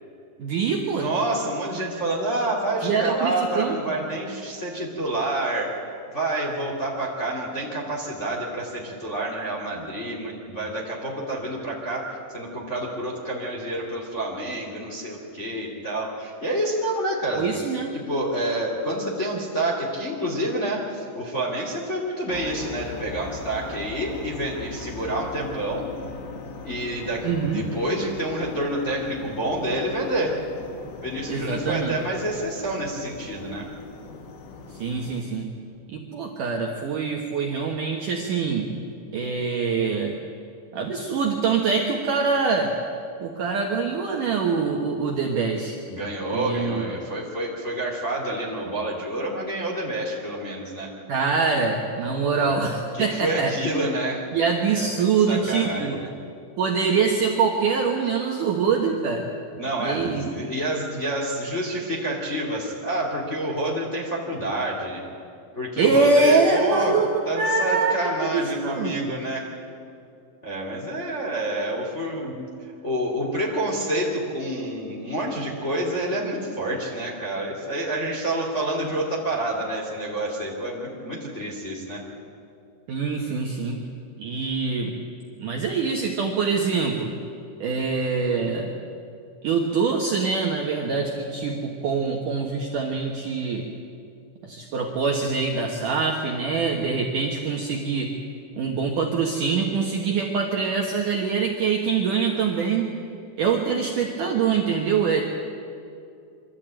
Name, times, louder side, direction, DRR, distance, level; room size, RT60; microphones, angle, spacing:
voice 1, 0.4-1.1 2.8-4.0 17.4-18.0 27.2-27.6 31.3-32.0 34.7-35.5 35.9-38.7 39.1-40.1 40.7-42.7 43.2-45.8 46.3-46.9 51.1-53.6 54.3-56.0 56.6-59.3 59.8-60.3 65.8-67.1 67.4-69.1 82.9-83.8 84.2-84.9 85.4-87.1 87.6-88.8 89.4-93.7 94.4-98.1 98.5-102.9 103.4-105.2, right 5 dB, 65° right, 0 dB, 2.2 m, -24 dB
voice 2, 1.0-17.5 17.9-25.8 26.6-30.4 31.0-33.7 45.9-50.9 52.3-52.5 52.9-54.3 54.8-55.9 59.5-65.0 65.5-67.0 67.3-69.4 70.4-72.5 72.8-82.0, right 1 dB, 20° left, -3 dB, 2.1 m, -28 dB
sound 1, 22.3-35.2, left 4 dB, 75° left, 3.8 m, -40 dB
24.5 x 13.5 x 9.0 m, 2.5 s
omnidirectional pair, 5.3 m